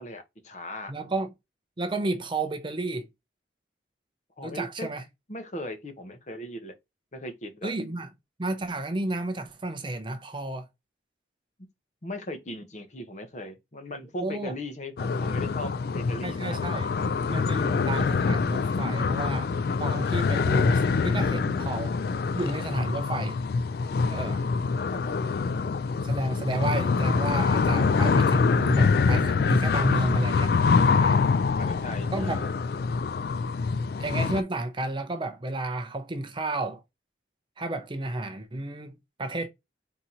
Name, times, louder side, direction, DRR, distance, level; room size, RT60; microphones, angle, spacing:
voice 1, 0.0-0.9 4.4-4.9 5.3-6.7 7.1-7.7 12.0-17.1 24.9-25.1 31.1-32.5, left 1 dB, 40° left, 0.8 m, -38 dB
voice 2, 0.9-1.3 1.8-3.1 4.4-5.0 7.6-8.1 8.4-10.7 14.2-14.5 16.2-16.9 17.3-19.5 19.8-22.0 22.3-23.4 24.1-24.4 26.0-30.5 31.0-31.2 32.1-32.4 34.0-36.8 37.6-39.5, right 2 dB, 25° right, 0.5 m, -31 dB
sound 1, 15.0-34.4, left 4 dB, 55° left, 0.3 m, -25 dB
3.9 x 2.8 x 4.3 m
head